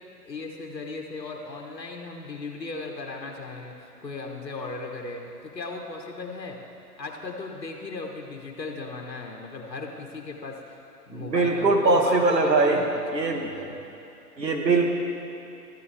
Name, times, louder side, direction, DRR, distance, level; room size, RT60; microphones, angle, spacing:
voice 1, 0.2-6.6 7.0-10.8 11.1-13.8, left 3 dB, 90° left, 1 dB, 1.3 m, -37 dB
voice 2, 11.1-12.8 13.1-13.5 14.4-14.9, right 3 dB, 85° right, 2 dB, 1.4 m, -21 dB
13.5 x 9.6 x 3.4 m, 2.8 s
figure-of-eight pair, 135°, 49 cm